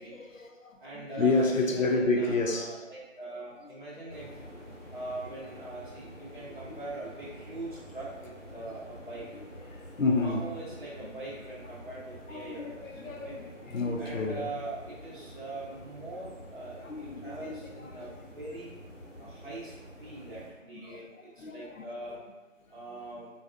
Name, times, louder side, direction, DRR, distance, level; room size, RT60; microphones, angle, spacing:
voice 1, 0.0-2.9 3.6-3.7 9.3-10.5 11.1-11.2 12.3-14.6 16.2-16.3 16.8-18.1 20.2-20.3 20.7-21.8, left 3 dB, 80° left, 0.6 m, -31 dB
voice 2, 0.8-4.3 4.9-9.3 10.1-12.8 13.2-13.4 14.0-18.7 19.2-22.2 22.7-23.3, right 2 dB, 40° right, 0.7 m, -42 dB
sound 1, 4.1-20.5, equal, 65° left, 1.2 m, -48 dB
3.9 x 2.5 x 2.5 m
figure-of-eight pair, 175°, 39 cm